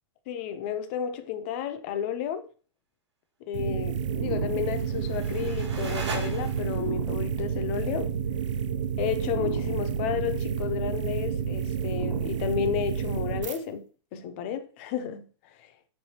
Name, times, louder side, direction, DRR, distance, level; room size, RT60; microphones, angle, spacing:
voice 1, 0.3-2.5 3.4-8.1 9.0-15.3 15.6-15.7, left 9 dB, 25° left, 0.3 m, -32 dB
sound 1, 3.5-13.6, right 7 dB, 85° right, 0.4 m, -30 dB
sound 2, 4.6-7.0, right 4 dB, 70° right, 1.3 m, -39 dB
5.8 x 3.2 x 2.8 m
supercardioid pair, 165°, 15 cm